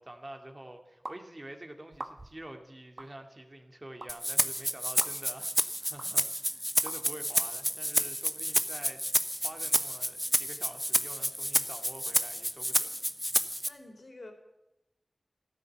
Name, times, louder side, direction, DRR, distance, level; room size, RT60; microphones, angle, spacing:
voice 1, 0.0-13.0, right 1 dB, 30° right, 5 dB, 2.5 m, -47 dB
sound 1, 1.1-1.2 1.9-2.4 3.0-3.1 4.0-4.1 5.0-5.1 6.0-6.1 6.9-7.0, right 2 dB, 45° right, 1.2 m, -42 dB
Rattle (instrument), 4.1-13.7, equal, ahead, 0.8 m, -30 dB
voice 2, 13.6-14.3, left 2 dB, 65° left, 4 dB, 3.8 m, -48 dB
14.5 x 12.5 x 7.9 m, 0.93 s
wide cardioid pair, 55°, 0 cm